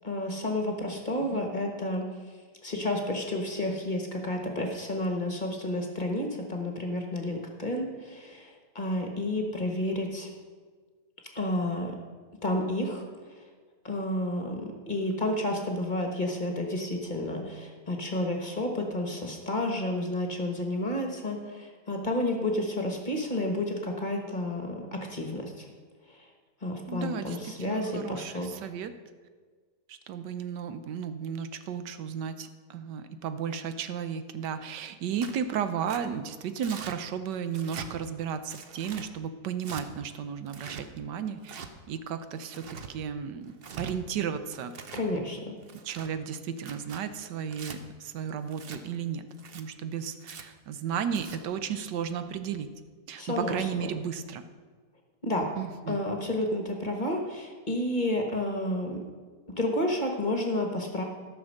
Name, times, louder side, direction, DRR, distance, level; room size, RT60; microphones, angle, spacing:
voice 1, 0.0-2.1 2.6-10.3 11.3-11.9 12.4-13.0 13.8-25.7 26.6-28.6 44.9-45.5 53.2-53.7 55.2-55.5 55.9-59.0 59.5-61.0, left 1 dB, 30° left, 2 dB, 1.2 m, -31 dB
voice 2, 26.9-28.9 29.9-41.6 41.9-44.7 45.8-49.2 49.5-52.7 53.1-54.4 55.6-56.0, right 7 dB, 85° right, 10 dB, 1.4 m, -34 dB
Tearing, 35.2-35.4 35.9-36.0 36.6-37.0 37.5-37.9 38.5-39.1 39.6-39.8 40.5-40.8 41.4-41.7 42.4-42.9 43.5-43.9 44.5-45.1 45.6-46.1 46.6-47.0 47.5-47.8 48.5-48.8 49.3-49.6 50.2-50.4 51.0-51.4, right 6 dB, 50° right, 0.7 m, -43 dB
13.5 x 6.2 x 6.5 m, 1.5 s
omnidirectional pair, 1.8 m